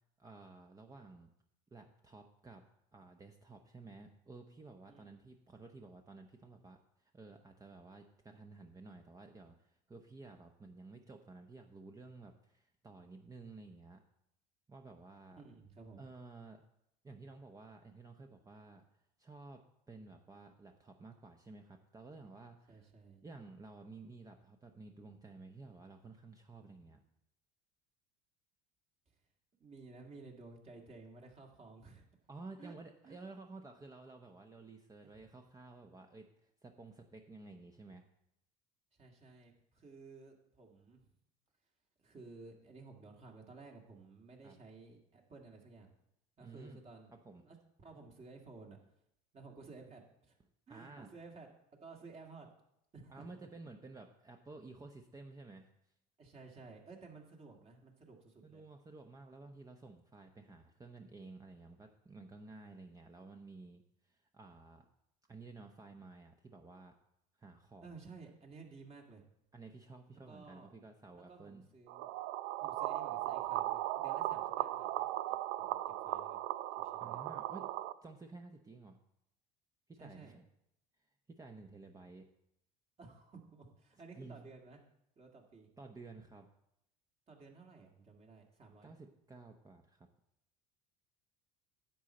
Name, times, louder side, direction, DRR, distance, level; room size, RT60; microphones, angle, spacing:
voice 1, 0.2-1.3 1.7-2.6 2.9-14.0 14.7-15.4 16.0-16.6 17.0-18.8 19.2-22.9 23.2-27.0 32.3-38.1 44.4-44.6 46.4-46.8 47.2-47.4 50.7-51.1 53.1-55.7 58.4-64.9 65.3-66.9 67.4-68.0 69.5-71.7 77.0-77.7 78.0-79.0 79.9-80.4 81.3-82.3 84.2-84.4 85.8-86.5 88.8-90.1, right 3 dB, 20° right, 4 dB, 0.9 m, -53 dB
voice 2, 4.9-5.2 15.4-16.0 22.7-23.2 29.6-32.1 32.6-32.7 33.0-33.2 35.0-35.3 38.9-41.1 42.0-45.9 46.4-47.2 47.4-48.8 49.3-50.4 50.7-51.5 51.8-52.5 52.9-53.5 56.2-58.6 67.8-69.2 70.3-70.7 71.3-72.1 72.6-76.4 76.8-77.2 80.0-80.3 83.0-84.8 85.2-85.7 87.3-89.0, right 4 dB, 35° right, 1 dB, 1.9 m, -55 dB
sound 1, 71.9-77.9, right 15 dB, 65° right, 0.5 m, -37 dB
10.0 x 7.5 x 4.2 m, 0.80 s
supercardioid pair, 85°, 19 cm